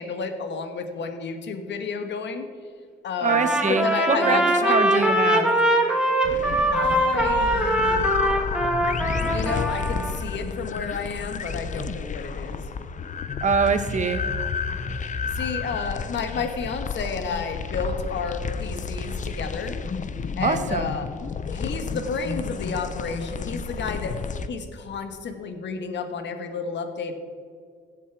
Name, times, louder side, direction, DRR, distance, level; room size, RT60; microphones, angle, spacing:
voice 1, 0.0-2.4 3.0-5.1 6.7-8.1 9.3-12.6 15.3-19.7 20.4-21.1 21.5-24.2 24.5-27.1, left 5 dB, 65° left, 7 dB, 1.5 m, -31 dB
voice 2, 3.2-4.4 4.7-5.5 13.4-14.2 20.4-20.9, right 5 dB, 40° right, 9 dB, 1.2 m, -23 dB
Trumpet, 3.3-10.2, right 1 dB, 5° right, 1.8 m, -22 dB
sound 1, 6.2-24.5, left 5 dB, 40° left, 0.7 m, -31 dB
16.0 x 7.6 x 4.7 m, 2.1 s
cardioid pair, 90°, 20 cm